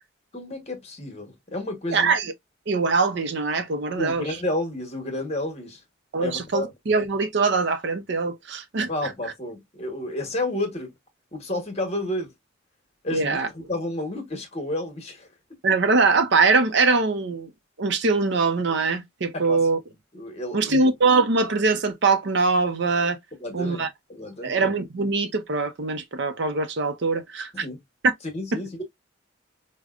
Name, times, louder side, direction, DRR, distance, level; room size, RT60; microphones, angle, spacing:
voice 1, 0.3-2.1 4.0-5.8 6.2-6.7 8.9-10.9 11.3-12.3 13.0-15.3 19.3-19.7 20.1-20.8 23.4-23.8 24.1-24.7 27.5-27.8 28.3-28.8, left 1 dB, 35° left, 1.1 m, -31 dB
voice 2, 1.9-2.3 2.7-4.3 6.1-8.9 13.1-13.5 15.6-17.5 17.8-19.8 20.5-23.2 23.5-23.9 24.4-27.6, right 4 dB, 60° right, 0.6 m, -22 dB
5.0 x 2.1 x 2.4 m
head